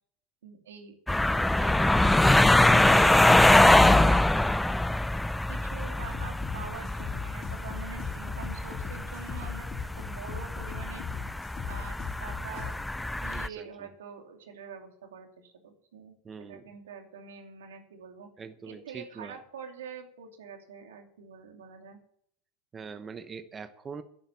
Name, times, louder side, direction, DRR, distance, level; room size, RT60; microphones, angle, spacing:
voice 1, 0.4-0.9 1.4-2.0 2.7-4.4 5.5-9.7 10.0-11.4 11.7-16.2 16.5-18.3 18.6-22.0, right 7 dB, 85° right, 4 dB, 2.7 m, -45 dB
sound 1, 1.1-13.5, left 1 dB, 5° left, 0.5 m, -23 dB
sound 2, 6.0-12.7, left 8 dB, 45° left, 2.4 m, -40 dB
voice 2, 13.3-13.9 16.2-16.6 18.4-19.4 22.7-24.0, right 5 dB, 25° right, 10 dB, 0.9 m, -43 dB
11.0 x 10.5 x 7.0 m, 0.67 s
hypercardioid pair, 100°, 0 cm